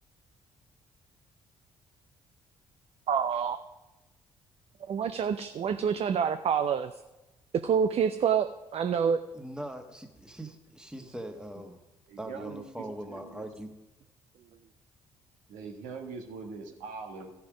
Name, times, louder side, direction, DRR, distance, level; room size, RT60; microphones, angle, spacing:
voice 1, 3.1-3.6 4.9-6.9 7.6-9.2, right 7 dB, 50° right, 9 dB, 0.6 m, -27 dB
voice 2, 9.3-11.8 12.2-13.7, right 1 dB, 5° right, 5 dB, 1.5 m, -41 dB
voice 3, 12.1-13.5 15.5-17.3, right 4 dB, 70° right, 2 dB, 1.5 m, -42 dB
15.0 x 5.7 x 5.1 m, 1.0 s
hypercardioid pair, 45°, 13 cm